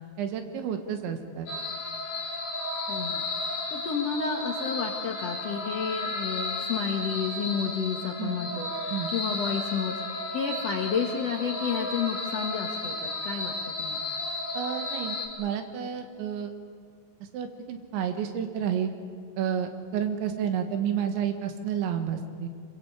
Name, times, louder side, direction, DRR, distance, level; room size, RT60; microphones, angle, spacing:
voice 1, 0.2-1.5 8.2-8.4 8.9-9.1 14.6-16.5 17.3-18.9 19.4-22.5, right 8 dB, 75° right, 6 dB, 3.9 m, -30 dB
sound 1, 1.5-15.3, left 2 dB, 50° left, 4.6 m, -33 dB
voice 2, 2.9-3.2 3.7-14.1, left 6 dB, 75° left, 1 dB, 1.4 m, -31 dB
26.5 x 22.5 x 8.5 m, 2.2 s
omnidirectional pair, 5.4 m